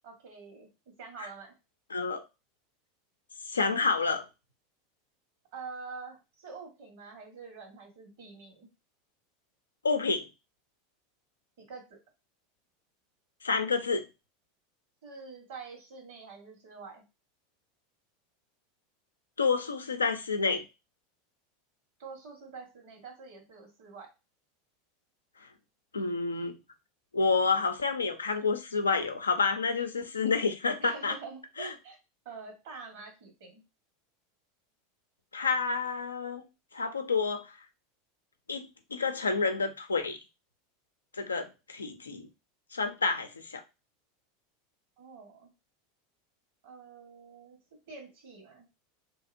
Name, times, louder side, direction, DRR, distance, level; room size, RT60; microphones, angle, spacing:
voice 1, 0.0-0.7 1.0-1.5 5.5-8.7 11.6-12.0 15.0-17.0 22.0-24.1 30.8-32.0 32.2-33.6 45.0-45.5 46.6-47.6 47.9-48.7, right 4 dB, 65° right, 1.3 m, -46 dB
voice 2, 1.9-2.2 3.5-4.2 9.8-10.3 13.4-14.1 19.4-20.6 25.9-26.6 27.1-31.1 31.6-31.7 35.3-36.5 36.7-37.5 38.5-40.2 41.2-42.3 42.7-43.6, left 4 dB, 90° left, 0.4 m, -29 dB
2.8 x 2.7 x 2.5 m
hypercardioid pair, 85°, 0 cm